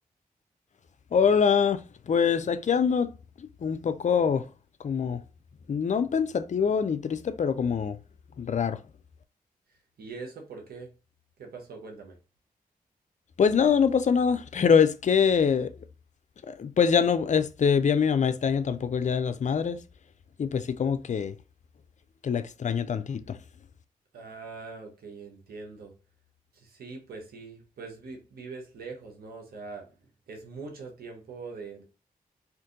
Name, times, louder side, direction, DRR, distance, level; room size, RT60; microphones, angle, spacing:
voice 1, 1.1-3.1 3.6-4.4 4.8-5.2 5.7-8.0 8.4-8.8 13.4-15.7 16.5-19.8 20.4-21.3 22.2-23.4, left 6 dB, 50° left, 0.4 m, -24 dB
voice 2, 10.0-10.9 11.4-12.1 24.1-25.9 26.5-29.9 30.3-31.8, right 4 dB, 80° right, 1.0 m, -42 dB
2.6 x 2.5 x 3.7 m
cardioid pair, 45°, 16 cm